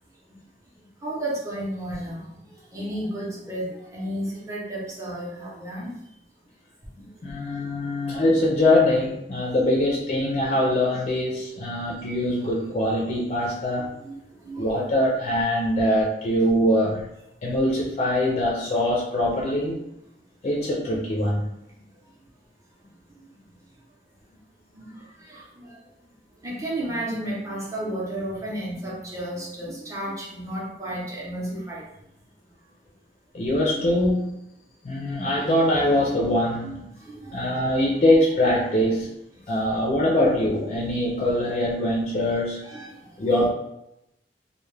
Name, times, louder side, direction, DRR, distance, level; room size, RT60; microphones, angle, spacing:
voice 1, 0.8-6.0 6.9-7.3 10.4-10.5 11.2-11.3 13.5-14.8 23.1-23.3 24.3-24.4 24.7-25.9 26.4-31.9 36.6-37.9 39.3-39.7 42.6-43.3, right 1 dB, 20° right, -5 dB, 0.7 m, -34 dB
voice 2, 7.2-13.9 14.6-17.1 17.4-19.8 20.4-21.4 33.3-34.4 34.8-36.9 37.3-39.1 39.5-42.7 43.2-43.5, left 1 dB, 35° left, -3 dB, 0.4 m, -23 dB
2.2 x 2.1 x 3.1 m, 0.83 s
head